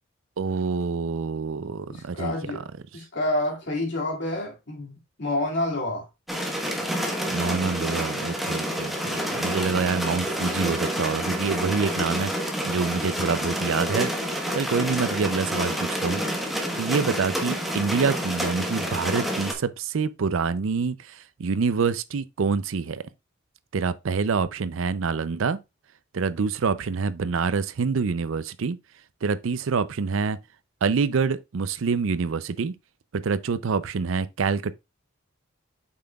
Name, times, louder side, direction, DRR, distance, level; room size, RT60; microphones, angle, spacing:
voice 1, 0.4-2.4 7.3-16.2 16.8-23.0 23.7-25.6 26.1-28.8 29.2-30.4 30.8-32.7 33.1-34.7, right 5 dB, 75° right, 0.5 m, -26 dB
voice 2, 1.9-2.7 2.9-6.1 10.2-10.4, left 1 dB, 55° left, 2.3 m, -29 dB
sound 1, 6.3-19.5, equal, ahead, 1.1 m, -28 dB
8.6 x 5.8 x 2.3 m
head